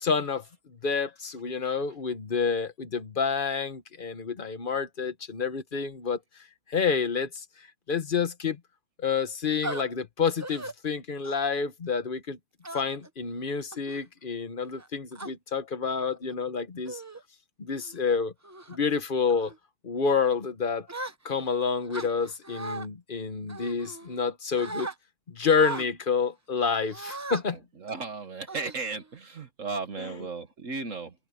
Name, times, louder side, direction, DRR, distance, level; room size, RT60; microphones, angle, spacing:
voice 1, 0.0-8.6 9.0-12.4 12.7-17.0 17.6-18.3 18.7-19.5 19.8-20.9 21.2-24.9 25.3-27.6 30.0-30.3, left 5 dB, 40° left, 1.3 m, -29 dB
sound 1, 9.6-9.8 10.4-10.7 11.2-11.5 12.6-13.1 13.7-14.0 14.7-15.3 16.1-16.3 16.8-17.2 17.7-17.9 18.4-18.8 19.3-19.6 20.9-21.5 21.9-22.9 23.5-24.3 24.6-24.9 25.5-25.9 26.9-27.4 27.9-28.0 28.5-29.2, right 2 dB, 15° right, 0.6 m, -38 dB
voice 2, 27.8-31.1, right 4 dB, 65° right, 1.9 m, -35 dB
omnidirectional pair, 1.5 m